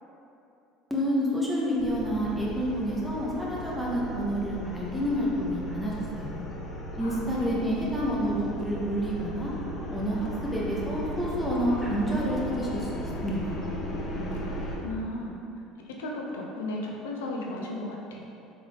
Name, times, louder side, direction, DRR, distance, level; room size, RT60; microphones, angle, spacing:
voice 1, 0.9-6.4 7.0-9.5 9.9-13.7, equal, ahead, -6 dB, 1.0 m, -29 dB
sound 1, 1.8-14.8, equal, 45° left, 0.8 m, -36 dB
voice 2, 7.0-7.8 14.1-14.4 14.8-15.3 16.0-18.2, left 1 dB, 85° left, -1 dB, 0.6 m, -35 dB
3.7 x 3.6 x 3.4 m, 2.8 s
hypercardioid pair, 80°, 0 cm